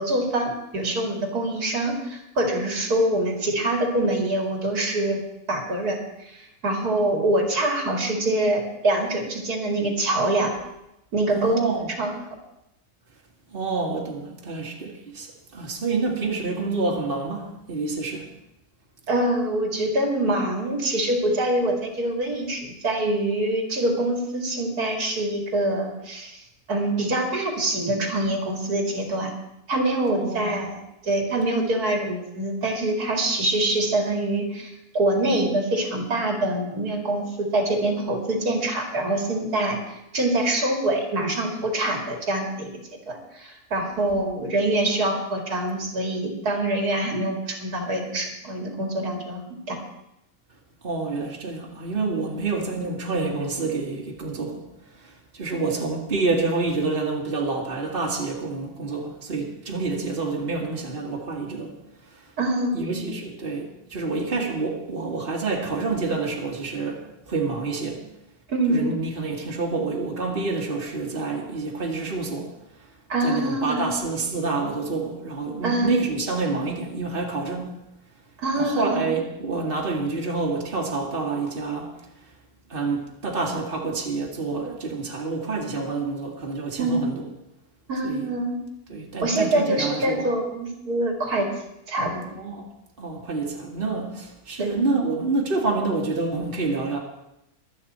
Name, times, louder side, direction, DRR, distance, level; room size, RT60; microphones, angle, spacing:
voice 1, 0.0-5.2 5.5-10.5 11.1-12.2 19.1-26.4 26.7-29.3 29.7-30.8 31.0-42.7 43.1-49.8 62.4-63.1 68.5-68.9 73.1-73.9 75.6-75.9 78.4-79.0 86.8-87.0 87.9-88.6 89.2-91.5 91.9-92.2 94.6-94.7, right 1 dB, 80° right, 2 dB, 2.8 m, -25 dB
voice 2, 11.3-11.9 13.5-18.3 30.2-30.5 50.8-54.6 54.9-61.7 62.0-62.3 62.7-68.0 68.7-72.5 73.2-77.7 78.6-81.9 82.7-87.2 88.0-88.3 88.9-90.3 92.3-92.6 93.0-97.0, right 3 dB, 35° right, -1 dB, 2.2 m, -28 dB
23.5 x 8.8 x 4.3 m, 0.86 s
omnidirectional pair, 1.6 m